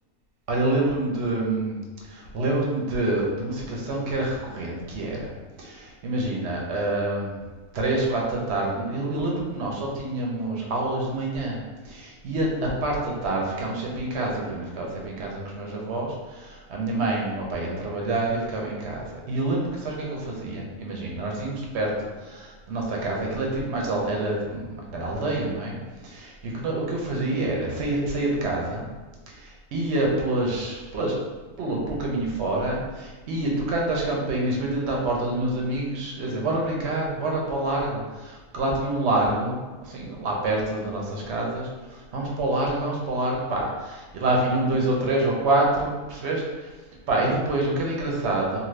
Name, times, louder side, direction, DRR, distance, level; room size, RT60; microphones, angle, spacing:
voice 1, 0.5-1.8 2.0-5.3 5.6-7.4 7.7-11.6 11.8-25.7 26.0-28.8 29.3-31.1 31.6-46.7 47.1-48.6, right 2 dB, 60° right, -2 dB, 0.9 m, -27 dB
2.6 x 2.5 x 3.1 m, 1.2 s
omnidirectional pair, 1.4 m